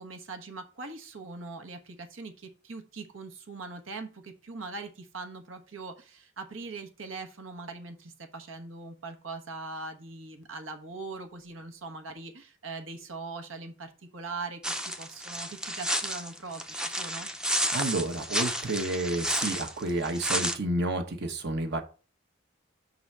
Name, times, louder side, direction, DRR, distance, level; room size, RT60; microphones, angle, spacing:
voice 1, 0.0-17.3, right 3 dB, 80° right, 6 dB, 1.2 m, -41 dB
sound 1, 14.6-20.6, equal, 5° right, 0.5 m, -31 dB
voice 2, 17.7-21.8, right 2 dB, 60° right, 6 dB, 1.1 m, -30 dB
5.5 x 4.0 x 6.0 m, 0.35 s
head